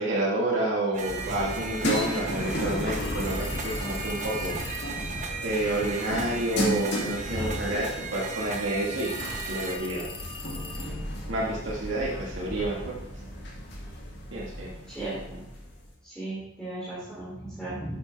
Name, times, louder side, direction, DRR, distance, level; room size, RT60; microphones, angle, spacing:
voice 1, 0.0-4.5 5.4-10.1 11.3-13.0 14.3-14.7, right 1 dB, 75° right, -4 dB, 1.7 m, -29 dB
sound 1, 0.9-9.8, right 4 dB, 40° right, 0.9 m, -36 dB
sound 2, 1.1-15.9, equal, 60° left, 2.2 m, -34 dB
sound 3, 3.0-5.1 9.0-11.2, left 4 dB, 25° left, 0.8 m, -42 dB
voice 2, 14.9-15.4 16.0-18.0, right 2 dB, 5° left, -10 dB, 2.8 m, -36 dB
8.3 x 7.9 x 3.4 m, 0.85 s
head